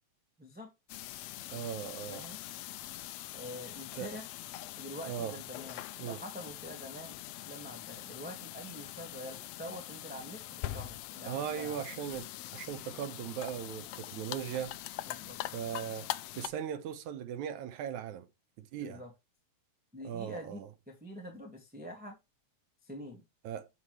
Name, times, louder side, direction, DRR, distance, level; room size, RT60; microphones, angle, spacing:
voice 1, 0.4-0.7 2.1-2.4 3.3-4.3 4.8-7.2 7.4-11.8 15.1-15.4 18.8-19.1 19.9-22.1 22.8-23.2, equal, 5° right, 1.3 m, -46 dB
sound 1, 0.9-16.5, left 15 dB, 75° left, 1.7 m, -43 dB
voice 2, 1.5-2.3 3.9-4.1 5.1-5.4 6.0-6.2 11.3-14.8 15.5-18.3 18.6-19.0 20.0-20.7 23.4-23.7, right 9 dB, 85° right, 2.5 m, -38 dB
8.8 x 5.7 x 3.2 m
omnidirectional pair, 3.3 m